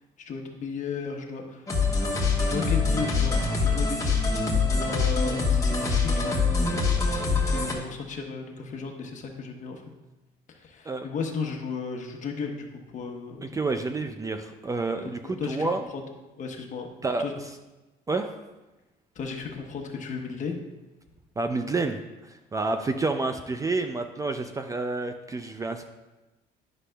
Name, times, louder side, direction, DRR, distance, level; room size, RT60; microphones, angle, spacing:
voice 1, 0.2-1.7 2.4-4.1 4.7-6.8 7.3-9.8 10.5-13.5 15.2-16.0 16.4-16.9 17.2-17.3 19.1-20.6, left 5 dB, 45° left, 2 dB, 1.1 m, -35 dB
sound 1, 1.7-7.7, left 4 dB, 20° left, 1.2 m, -24 dB
voice 2, 13.4-15.8 17.0-17.3 18.1-18.4 21.4-25.8, right 3 dB, 20° right, 7 dB, 0.4 m, -29 dB
10.0 x 6.0 x 2.2 m, 1.1 s
cardioid pair, 110°, 17 cm